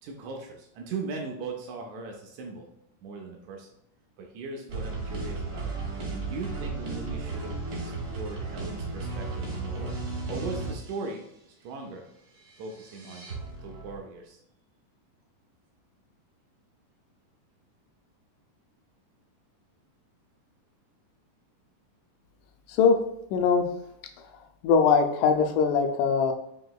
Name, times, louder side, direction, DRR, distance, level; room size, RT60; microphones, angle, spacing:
voice 1, 0.0-2.7 3.0-3.7 4.2-10.0 10.3-11.3 11.6-12.1 12.6-13.3 13.6-14.4, right 4 dB, 85° right, 1 dB, 1.6 m, -39 dB
sound 1, 4.7-10.9 12.6-14.0, right 3 dB, 65° right, 1.3 m, -34 dB
voice 2, 22.7-23.0 23.3-23.7 24.6-26.3, left 5 dB, 80° left, 5 dB, 1.9 m, -21 dB
6.1 x 2.9 x 2.3 m, 0.79 s
omnidirectional pair, 3.8 m